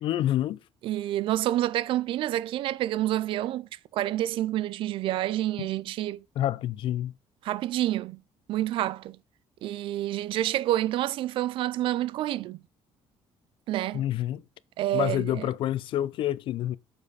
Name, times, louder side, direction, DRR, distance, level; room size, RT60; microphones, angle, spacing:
voice 1, 0.0-0.6 5.6-5.7 6.4-7.1 13.9-14.4 14.9-16.8, left 12 dB, 55° left, 0.5 m, -28 dB
voice 2, 0.8-6.2 7.4-8.2 8.5-9.2 9.6-12.6 13.7-14.0 14.8-15.5, right 14 dB, 55° right, 0.4 m, -28 dB
8.4 x 7.1 x 4.0 m
cardioid pair, 175°, 11 cm